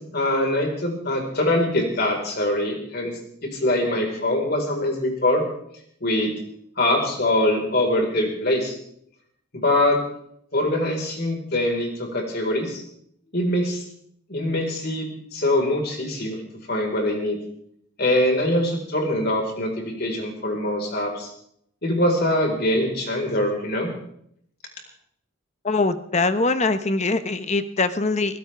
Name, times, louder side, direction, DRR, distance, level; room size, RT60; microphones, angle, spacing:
voice 1, 0.1-3.1 3.4-5.4 6.0-6.4 6.8-8.8 9.5-10.0 10.5-12.8 13.3-13.8 14.3-16.4 16.7-17.4 18.0-21.3 21.8-23.9, left 1 dB, 50° left, 2 dB, 4.4 m, -23 dB
voice 2, 25.6-28.4, left 3 dB, 30° left, 11 dB, 0.9 m, -22 dB
23.5 x 17.0 x 3.4 m, 0.70 s
head